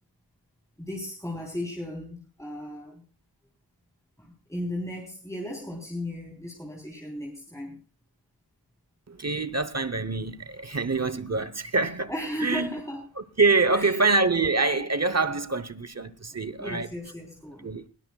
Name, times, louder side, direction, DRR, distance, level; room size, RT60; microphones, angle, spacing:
voice 1, 0.8-3.0 4.2-7.8 12.1-13.0 13.7-14.0 16.6-17.7, left 1 dB, 10° left, 3.6 m, -36 dB
voice 2, 9.1-12.1 12.4-12.7 13.2-16.9 17.6-17.9, right 3 dB, 40° right, 0.9 m, -25 dB
20.0 x 17.0 x 2.3 m
wide cardioid pair, 55°, 38 cm